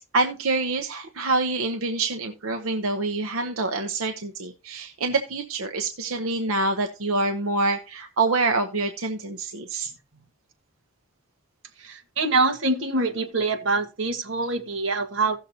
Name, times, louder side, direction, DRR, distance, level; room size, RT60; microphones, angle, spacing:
voice 1, 0.1-9.9, right 3 dB, 90° right, 0.9 m, -26 dB
voice 2, 11.8-15.4, right 3 dB, 65° right, 1.5 m, -25 dB
16.0 x 6.5 x 2.8 m
head